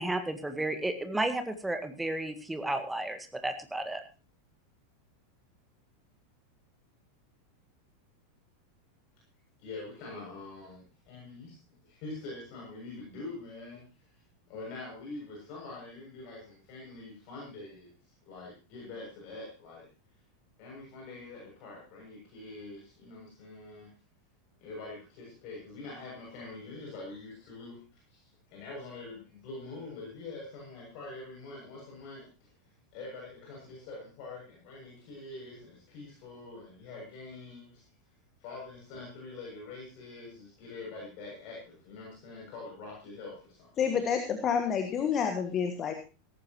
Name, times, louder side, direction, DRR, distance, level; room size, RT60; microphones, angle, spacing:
voice 1, 0.0-4.0, right 1 dB, 5° right, 8 dB, 1.8 m, -33 dB
voice 2, 9.6-11.6 11.8-14.1 14.4-17.9 18.2-19.8 20.6-23.9 24.6-32.5 32.9-37.8 38.4-43.9, left 3 dB, 45° left, -3 dB, 7.5 m, -45 dB
voice 3, 43.8-45.9, left 7 dB, 30° left, 7 dB, 1.6 m, -29 dB
17.0 x 14.5 x 3.1 m, 0.34 s
figure-of-eight pair, 85°, 0 cm